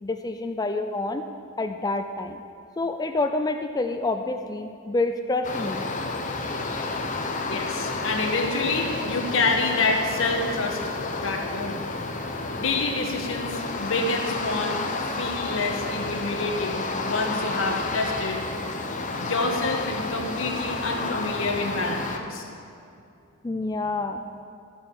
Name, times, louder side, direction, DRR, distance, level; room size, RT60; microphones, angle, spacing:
voice 1, 0.0-1.2 1.6-2.4 2.8-5.9 22.0-22.1 23.4-24.2, left 2 dB, 15° left, 7 dB, 0.4 m, -28 dB
sound 1, 5.4-22.2, left 3 dB, 35° left, 0.8 m, -30 dB
voice 2, 7.5-10.8 11.2-11.8 12.6-14.8 15.2-18.4 19.2-22.4, left 3 dB, 65° left, 2 dB, 1.5 m, -27 dB
12.5 x 6.9 x 7.2 m, 2.6 s
head